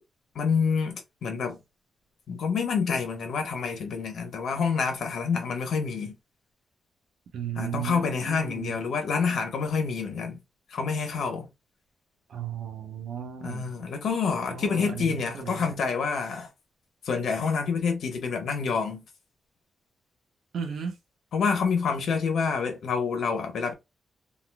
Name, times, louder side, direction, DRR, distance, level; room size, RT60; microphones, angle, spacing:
voice 1, 0.3-1.6 2.3-6.1 7.6-10.4 10.7-11.5 13.4-16.5 17.0-19.0 21.3-23.7, left 5 dB, 70° left, 1.1 m, -27 dB
voice 2, 7.3-8.8 12.3-13.7 14.5-15.7 20.5-21.0, right 8 dB, 85° right, 0.9 m, -35 dB
3.9 x 2.6 x 2.3 m
wide cardioid pair, 175°, 0 cm